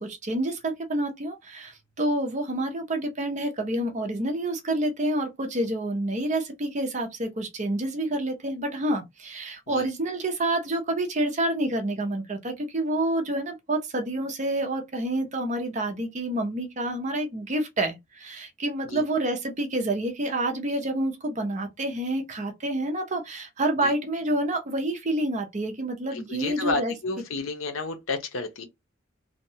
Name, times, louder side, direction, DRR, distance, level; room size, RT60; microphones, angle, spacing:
voice 1, 0.0-26.9, right 1 dB, 35° right, 0.5 m, -28 dB
voice 2, 26.1-28.6, left 3 dB, 75° left, 0.7 m, -31 dB
2.7 x 2.1 x 2.7 m
head